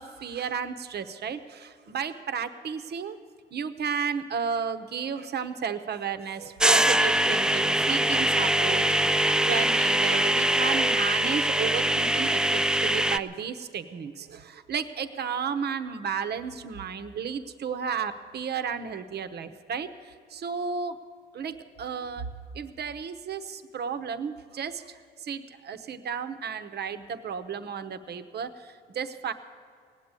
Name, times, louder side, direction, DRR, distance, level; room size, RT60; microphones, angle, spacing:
voice 1, 0.0-3.2 3.5-21.0 21.3-22.3 22.5-29.3, right 6 dB, 55° right, 11 dB, 0.9 m, -33 dB
sound 1, 6.6-13.2, right 1 dB, 5° right, 0.3 m, -23 dB
18.0 x 8.1 x 9.7 m, 2.2 s
cardioid pair, 90°, 20 cm